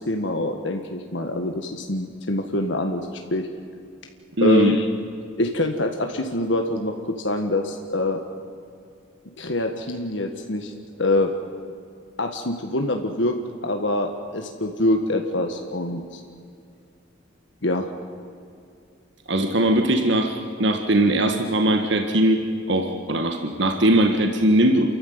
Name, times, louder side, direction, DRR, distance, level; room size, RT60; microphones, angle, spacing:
voice 1, 0.0-3.5 4.4-4.9 5.4-8.2 9.4-11.3 12.2-13.4 13.6-16.2 17.6-17.9, left 2 dB, 65° left, 4 dB, 1.7 m, -25 dB
voice 2, 4.4-4.8 19.3-22.4 22.7-24.9, right 1 dB, 60° right, 5 dB, 1.7 m, -20 dB
29.0 x 14.5 x 9.6 m, 2.4 s
head